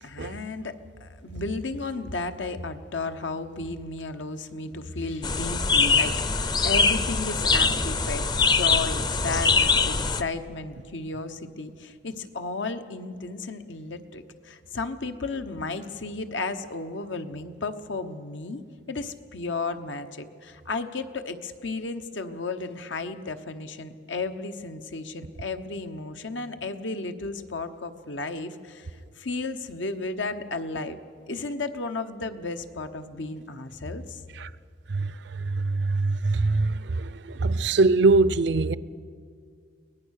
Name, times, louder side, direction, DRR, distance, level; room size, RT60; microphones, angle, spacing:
voice 1, 0.0-18.6 18.9-31.0 31.3-34.2, left 3 dB, 85° left, 1.1 m, -33 dB
sound 1, 5.2-10.2, left 4 dB, 20° left, 0.6 m, -23 dB
voice 2, 34.9-38.8, right 3 dB, 70° right, 0.6 m, -23 dB
23.0 x 18.5 x 6.5 m
head